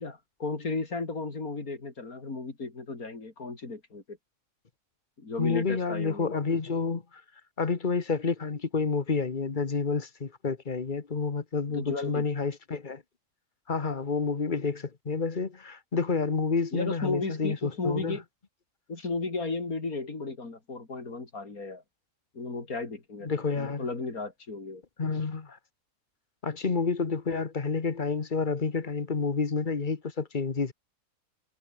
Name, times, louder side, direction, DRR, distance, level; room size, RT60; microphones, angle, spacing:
voice 1, 0.0-4.2 5.2-6.3 11.7-12.3 16.7-18.2 18.9-21.8 22.3-23.3 23.6-24.8, left 3 dB, 75° left, 4.2 m, -34 dB
voice 2, 5.4-7.0 7.6-13.0 13.7-18.2 23.2-23.8 25.0-25.6 26.4-30.7, left 4 dB, 35° left, 1.5 m, -29 dB
omnidirectional pair, 1.5 m